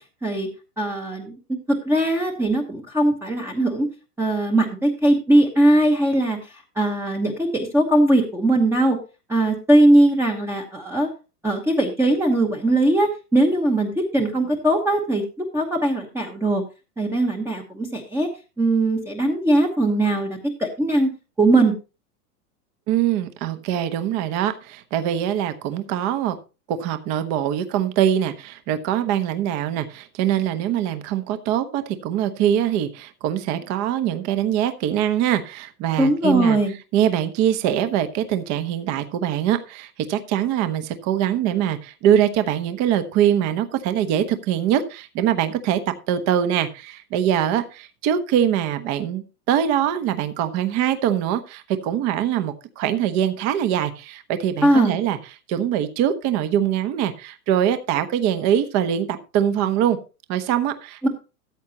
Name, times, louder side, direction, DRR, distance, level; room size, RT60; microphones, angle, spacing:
voice 1, 0.8-1.4 1.7-3.9 4.2-9.0 9.3-11.1 11.4-15.2 15.5-16.6 17.0-18.3 18.6-21.1 21.4-21.7 36.0-36.7 54.6-54.9 61.0-61.1, right 1 dB, 5° right, 1 dB, 1.0 m, -20 dB
voice 2, 22.9-26.4 26.7-36.6 36.9-45.8 46.1-55.2 55.5-59.1 59.3-60.0 60.3-61.1, right 10 dB, 35° right, 10 dB, 1.2 m, -23 dB
14.0 x 8.3 x 2.9 m, 0.30 s
hypercardioid pair, 140°, 47 cm